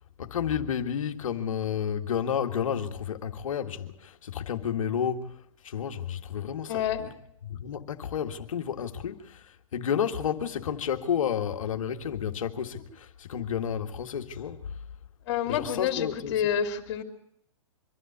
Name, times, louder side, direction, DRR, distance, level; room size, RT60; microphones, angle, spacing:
voice 1, 0.2-5.4 5.6-7.1 7.4-14.6 15.5-16.5, left 8 dB, 70° left, 1.8 m, -31 dB
voice 2, 6.7-7.0 15.3-17.0, left 9 dB, 40° left, 3.0 m, -28 dB
24.5 x 12.5 x 8.6 m
hypercardioid pair, 150°, 18 cm